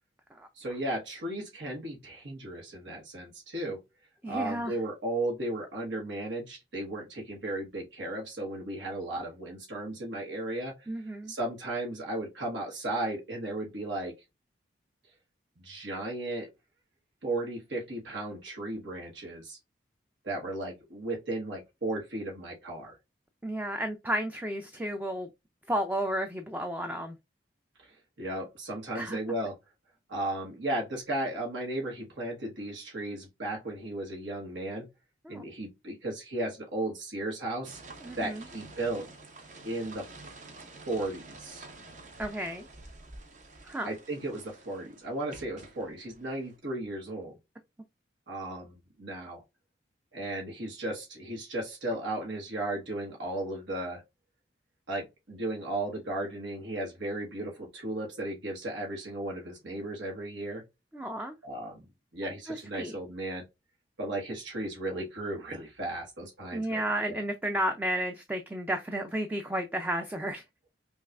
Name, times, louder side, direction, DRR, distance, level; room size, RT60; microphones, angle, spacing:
voice 1, 0.5-3.8 4.3-14.1 15.6-16.5 17.2-19.6 20.2-23.0 27.8-29.6 30.1-34.9 35.3-37.8 38.2-39.1 39.6-40.1 40.9-41.6 43.8-47.3 48.3-49.4 50.1-54.0 54.9-60.6 61.4-61.8 62.1-63.4 64.0-66.8 67.1-67.2, right 1 dB, 75° right, 1.2 m, -35 dB
voice 2, 4.2-4.8 10.9-11.3 23.4-25.3 25.7-27.1 28.9-29.2 35.3-35.4 38.0-38.5 42.2-42.7 43.6-43.9 60.9-61.3 62.5-63.0 66.5-70.4, right 1 dB, 10° right, 0.3 m, -32 dB
sound 1, 37.6-46.6, right 2 dB, 40° right, 0.7 m, -49 dB
5.5 x 2.3 x 2.4 m
head